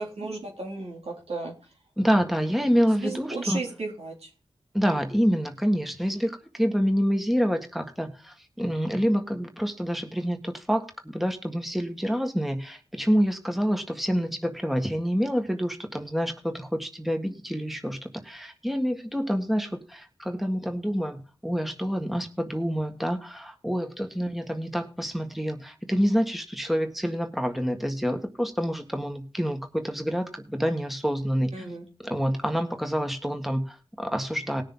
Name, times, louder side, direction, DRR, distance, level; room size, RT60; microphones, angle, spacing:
voice 1, 0.0-1.5 3.0-4.3 31.5-31.8, right 3 dB, 75° right, 0 dB, 3.2 m, -34 dB
voice 2, 2.0-3.6 4.7-10.9 11.1-31.7 32.0-34.6, equal, ahead, 5 dB, 1.7 m, -27 dB
19.0 x 6.6 x 3.9 m, 0.34 s
cardioid pair, 45°, 11 cm